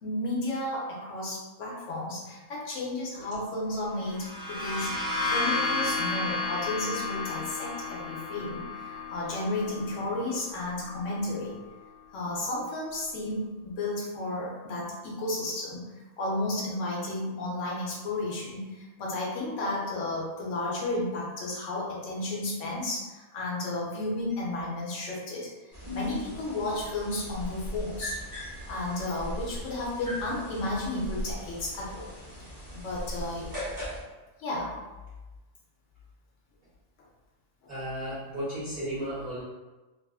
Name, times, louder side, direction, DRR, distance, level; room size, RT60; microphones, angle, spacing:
voice 1, 0.0-11.5 12.1-15.8 16.2-32.1 32.7-33.5 34.4-34.7, left 2 dB, 75° left, -5 dB, 1.2 m, -33 dB
sound 1, 4.0-11.6, left 3 dB, 45° left, 0.8 m, -33 dB
sound 2, 25.7-34.0, equal, 20° right, 0.8 m, -39 dB
voice 2, 37.7-39.4, equal, 40° right, -14 dB, 1.3 m, -34 dB
3.0 x 2.4 x 2.3 m, 1.2 s
omnidirectional pair, 1.3 m